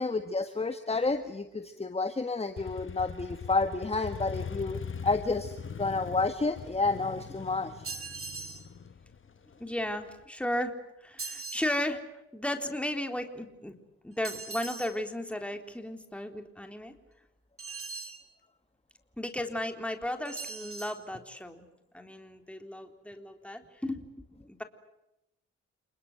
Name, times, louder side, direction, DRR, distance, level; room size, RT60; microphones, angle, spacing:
voice 1, 0.0-7.7, left 3 dB, 20° left, 8 dB, 1.7 m, -30 dB
Motorcycle, 2.6-10.2, left 6 dB, 40° left, 1.7 m, -41 dB
sound 1, 7.8-8.7 11.2-11.7 14.2-15.0 17.6-18.2 20.3-21.0, right 4 dB, 45° right, 3.3 m, -40 dB
voice 2, 9.6-10.7 11.0-12.0 12.3-13.8 14.0-17.0 19.2-21.7 21.9-24.6, left 1 dB, 5° left, 6 dB, 3.7 m, -35 dB
30.0 x 21.0 x 8.0 m, 0.89 s
cardioid pair, 70°, 30 cm